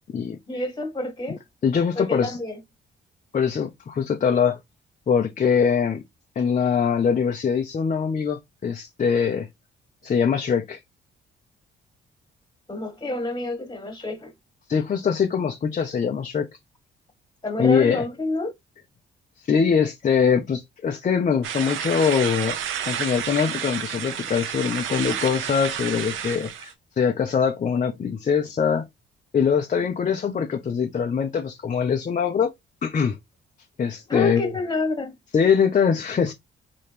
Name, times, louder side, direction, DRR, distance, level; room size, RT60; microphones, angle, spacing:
voice 1, 0.5-1.4 1.9-2.6 12.7-14.3 17.4-18.5 34.1-35.1, left 2 dB, 20° left, 1.7 m, -28 dB
voice 2, 1.6-2.4 3.3-4.6 5.1-6.0 6.4-9.5 10.0-10.8 14.7-16.5 17.6-18.0 19.5-22.6 22.8-28.8 29.3-32.5 32.8-33.2 33.8-34.4 35.3-36.3, left 6 dB, 40° left, 0.8 m, -22 dB
sound 1, 21.4-26.7, right 9 dB, 85° right, 0.8 m, -30 dB
4.2 x 3.2 x 3.3 m
cardioid pair, 90°, 20 cm